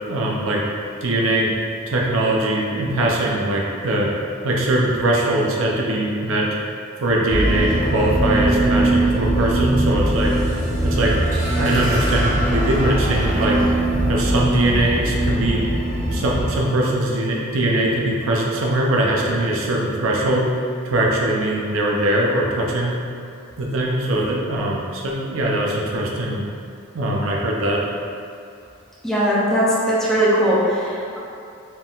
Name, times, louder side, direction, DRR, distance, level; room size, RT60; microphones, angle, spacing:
voice 1, 0.1-0.6 1.0-1.5 1.9-4.1 4.4-6.5 7.0-10.3 10.8-11.2 11.5-13.6 14.0-15.6 16.1-20.5 20.8-22.9 23.6-26.4 26.9-27.8, right 1 dB, 70° right, -2 dB, 0.6 m, -21 dB
sound 1, 7.3-16.5, right 1 dB, 40° right, 1.0 m, -21 dB
voice 2, 29.0-31.2, equal, ahead, -8 dB, 0.6 m, -19 dB
4.3 x 3.6 x 2.4 m, 2.6 s
head